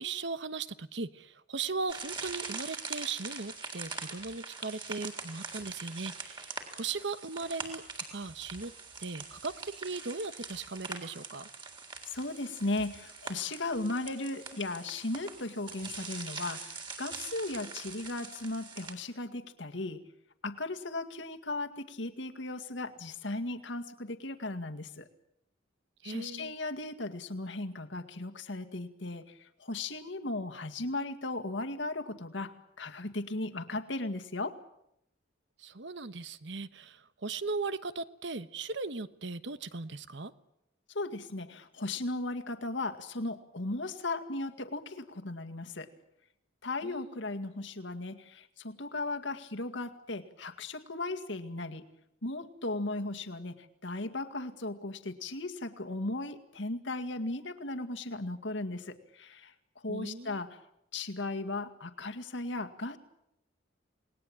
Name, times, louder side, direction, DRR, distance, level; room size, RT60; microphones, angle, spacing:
voice 1, 0.0-7.8 8.1-8.7 9.0-11.5 26.0-26.5 35.6-40.3 46.8-47.2 59.9-60.4, right 4 dB, 70° right, 13 dB, 1.2 m, -38 dB
sound 1, 1.9-18.9, right 4 dB, 25° right, 3.8 m, -43 dB
voice 2, 12.1-20.0 20.4-25.1 26.0-34.6 40.9-45.9 46.6-51.8 52.2-59.5 59.8-60.6 60.9-63.0, left 2 dB, 75° left, 6 dB, 2.1 m, -36 dB
28.5 x 20.0 x 8.9 m, 0.81 s
head